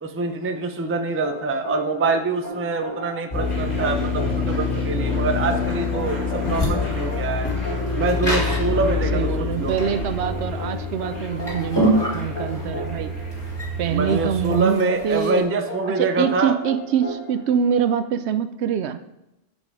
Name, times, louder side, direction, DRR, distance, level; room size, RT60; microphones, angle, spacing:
voice 1, 0.0-7.5 7.9-9.8 13.9-16.5, right 3 dB, 15° right, 5 dB, 0.4 m, -25 dB
sound 1, 1.2-18.1, equal, 85° left, 2.6 m, -35 dB
sound 2, 3.3-14.5, left 4 dB, 50° left, 2.9 m, -27 dB
sound 3, 5.0-15.4, right 1 dB, 20° left, 2.0 m, -28 dB
voice 2, 8.7-13.1 13.8-15.5 15.9-19.0, right 8 dB, 75° right, 10 dB, 0.9 m, -24 dB
8.2 x 5.3 x 4.8 m, 0.88 s
omnidirectional pair, 1.2 m